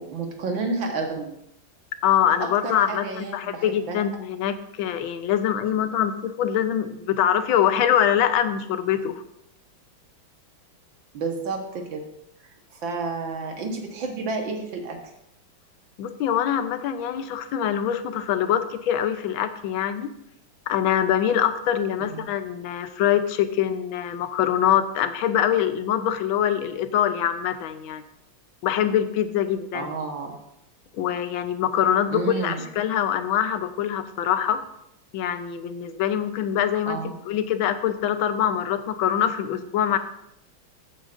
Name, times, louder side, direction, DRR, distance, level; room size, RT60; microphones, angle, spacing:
voice 1, 0.0-1.4 2.4-4.0 11.1-12.0 12.4-15.0 22.0-22.3 29.7-30.3 32.1-32.6 36.9-37.1, right 4 dB, 70° right, 3 dB, 2.0 m, -31 dB
voice 2, 2.0-9.2 16.0-20.1 20.7-28.0 28.6-29.9 31.0-34.6 35.1-37.0 37.3-40.0, left 10 dB, 75° left, 10 dB, 1.5 m, -24 dB
13.5 x 8.8 x 2.5 m, 0.79 s
omnidirectional pair, 2.3 m